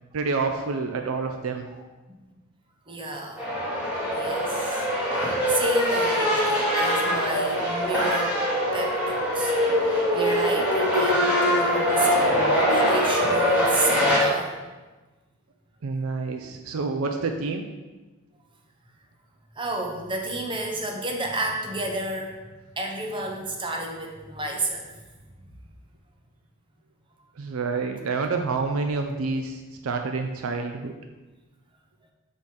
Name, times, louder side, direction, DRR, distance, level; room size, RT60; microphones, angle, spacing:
voice 1, 0.1-1.7 15.8-17.6 27.4-30.9, right 4 dB, 75° right, 5 dB, 0.5 m, -28 dB
voice 2, 2.9-4.9 5.1-8.4 8.7-9.5 9.8-14.6 19.6-22.4 22.8-24.9, right 2 dB, 25° right, 1 dB, 0.7 m, -31 dB
sound 1, 3.4-14.2, equal, 5° right, 1.4 m, -23 dB
5.4 x 4.4 x 4.7 m, 1.2 s
head